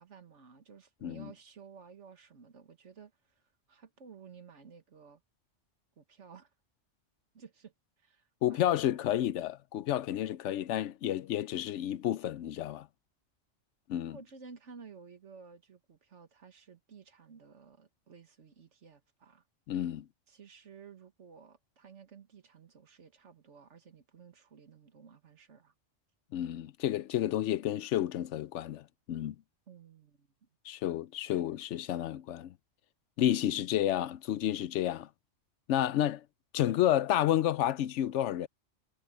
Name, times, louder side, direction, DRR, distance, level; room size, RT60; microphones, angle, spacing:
voice 1, 0.0-3.4 3.7-5.2 6.0-6.5 7.3-9.1 14.1-19.4 20.3-25.7 29.7-30.3 31.2-31.6 33.3-33.6, right 6 dB, 75° right, 1.8 m, -54 dB
voice 2, 8.4-12.9 13.9-14.2 19.7-20.1 26.3-29.3 30.7-32.5 33.2-35.1 35.7-36.2 36.5-38.5, left 12 dB, 75° left, 0.9 m, -30 dB
omnidirectional pair, 1.2 m